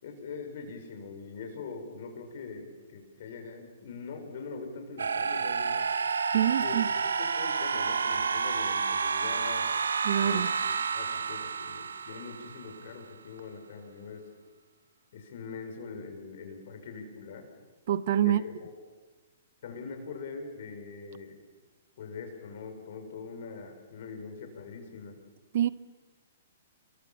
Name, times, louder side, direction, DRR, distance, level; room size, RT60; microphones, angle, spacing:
voice 1, 0.0-5.9 6.6-9.7 10.2-14.2 15.1-17.5 18.2-18.8 19.6-21.4 22.0-25.2, left 4 dB, 60° left, 6.1 m, -42 dB
sound 1, 5.0-12.9, right 5 dB, 80° right, 1.4 m, -30 dB
voice 2, 6.3-6.9 10.0-10.5 17.9-18.4 25.5-25.7, right 11 dB, 55° right, 0.9 m, -25 dB
28.0 x 23.0 x 7.3 m
hypercardioid pair, 125°, 0 cm